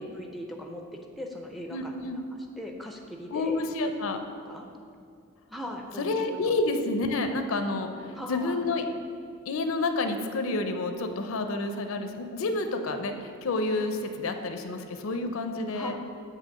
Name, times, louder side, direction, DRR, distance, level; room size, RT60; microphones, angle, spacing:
voice 1, 0.0-2.2 2.6-3.6 3.8-4.7 5.5-6.1 6.4-6.5 8.1-8.6 15.7-16.0, left 1 dB, ahead, 2 dB, 0.4 m, -39 dB
voice 2, 1.7-2.2 3.3-4.2 6.0-7.9 8.3-8.8 9.5-15.9, left 2 dB, 75° left, 7 dB, 0.5 m, -29 dB
7.6 x 3.2 x 6.3 m, 2.4 s
head